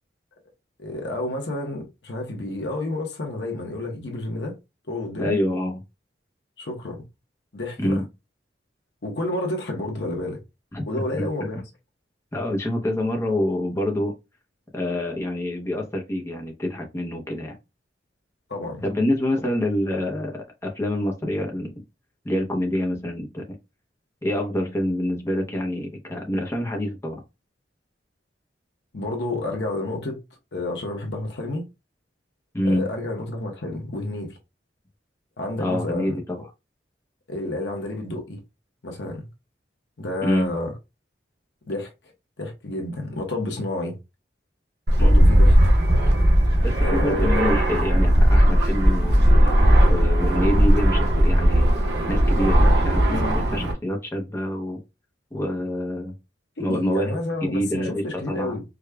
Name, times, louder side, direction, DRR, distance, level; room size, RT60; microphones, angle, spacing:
voice 1, 0.8-4.6 4.9-5.4 6.6-7.1 7.5-8.0 9.0-10.4 10.9-11.6 18.5-18.9 28.9-30.2 30.5-31.7 32.6-34.4 35.4-36.2 37.3-38.4 38.8-39.3 40.0-40.7 41.7-41.9 42.4-44.0 45.0-45.6 46.8-47.5 56.6-58.6, left 2 dB, 70° left, 0.9 m, -30 dB
voice 2, 5.2-5.8 7.8-8.0 10.7-10.9 11.2-11.3 12.3-14.1 14.7-17.5 18.8-21.7 22.2-23.4 24.2-27.2 32.5-32.9 35.6-36.5 40.2-40.5 45.0-45.2 46.6-49.2 49.9-51.7 52.1-54.8 55.3-56.1 56.6-58.6, left 1 dB, 15° left, 0.7 m, -26 dB
Fixed-wing aircraft airplane, 44.9-53.7, equal, 65° right, 1.0 m, -17 dB
4.9 x 2.3 x 2.3 m
head